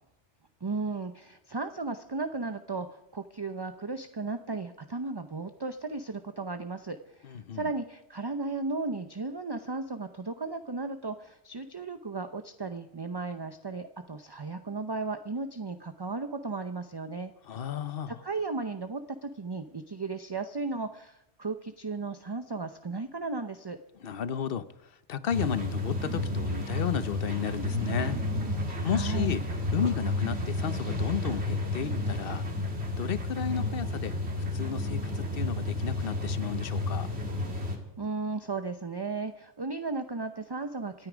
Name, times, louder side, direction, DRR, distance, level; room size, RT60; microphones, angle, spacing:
voice 1, 0.6-17.3 18.1-23.8 28.8-29.4 38.0-41.1, right 3 dB, 25° right, 9 dB, 0.6 m, -35 dB
voice 2, 7.2-7.7 17.4-18.2 24.0-24.7 25.1-28.2 28.8-29.4 29.7-32.4 33.0-37.1, left 8 dB, 55° left, 14 dB, 1.0 m, -33 dB
sound 1, 25.3-37.8, left 2 dB, 65° right, 2.6 m, -31 dB
26.5 x 9.6 x 5.0 m, 0.87 s
omnidirectional pair, 1.2 m